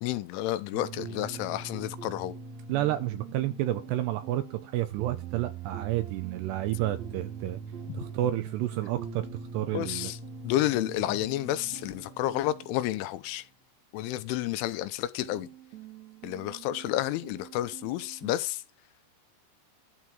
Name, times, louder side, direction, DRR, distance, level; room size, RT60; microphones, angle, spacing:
voice 1, 0.0-2.4 7.9-8.0 9.7-10.2 10.4-13.5 13.9-15.5 16.2-18.6, left 14 dB, 85° left, 3.1 m, -30 dB
sound 1, 0.7-13.5 15.2-18.3, right 6 dB, 55° right, 2.1 m, -43 dB
voice 2, 2.7-7.6 7.9-9.3 9.5-10.1, right 14 dB, 80° right, 2.5 m, -30 dB
12.0 x 4.6 x 7.2 m
omnidirectional pair, 5.6 m